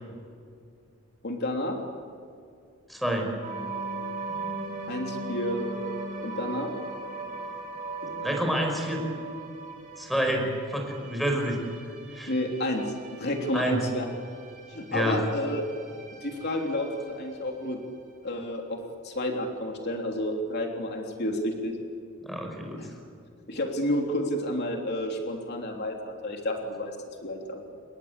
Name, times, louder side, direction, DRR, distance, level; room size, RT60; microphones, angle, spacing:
voice 1, 1.2-1.8 4.9-5.7 6.2-6.7 12.3-14.0 14.7-15.6 16.2-17.8 18.2-21.8 22.8-22.9 23.5-26.9 27.2-27.7, left 1 dB, 50° left, 2 dB, 3.3 m, -30 dB
voice 2, 2.9-3.3 8.2-9.0 10.0-11.7 12.1-12.3 13.5-13.8 14.9-15.2 22.2-22.8, equal, ahead, 3 dB, 5.3 m, -28 dB
sound 1, 3.4-17.9, right 3 dB, 40° right, 5.8 m, -39 dB
28.5 x 22.0 x 8.3 m, 2.4 s
head